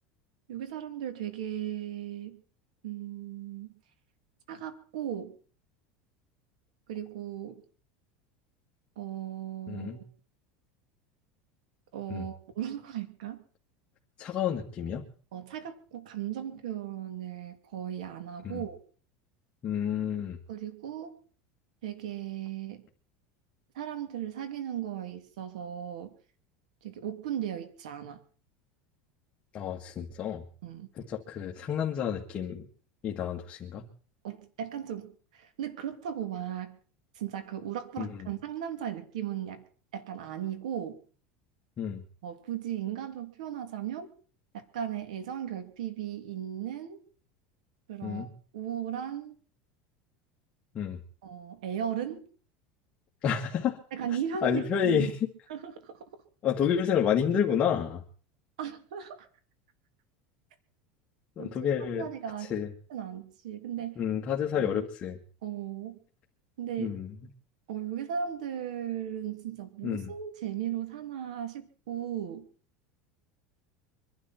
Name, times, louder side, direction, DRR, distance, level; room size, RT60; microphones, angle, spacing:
voice 1, 0.5-2.4 2.8-3.7 4.5-5.3 6.9-7.6 9.0-10.0 11.9-13.4 15.3-18.8 20.5-21.2 21.8-22.8 23.7-26.1 26.8-28.2 30.6-30.9 34.2-36.8 37.1-39.6 39.9-41.0 42.2-44.1 44.5-47.0 47.9-49.3 51.2-52.3 53.9-55.1 55.5-56.1 58.6-59.3 61.4-61.7 62.0-62.6 62.9-64.0 64.5-64.8 65.4-66.0 66.6-67.0 67.7-72.5, right 10 dB, 90° right, 8 dB, 3.0 m, -36 dB
voice 2, 9.7-10.0 12.1-12.3 14.2-15.1 18.4-18.6 19.6-20.4 29.5-30.4 31.1-32.7 33.0-33.9 38.0-38.3 41.8-42.0 48.0-48.3 50.7-51.0 53.2-53.8 54.4-55.3 56.4-58.0 61.4-62.1 62.4-62.7 64.0-65.2 66.8-67.1 69.8-70.1, left 8 dB, 35° left, 0 dB, 2.0 m, -29 dB
24.5 x 12.0 x 4.5 m, 0.41 s
supercardioid pair, 135°, 4 cm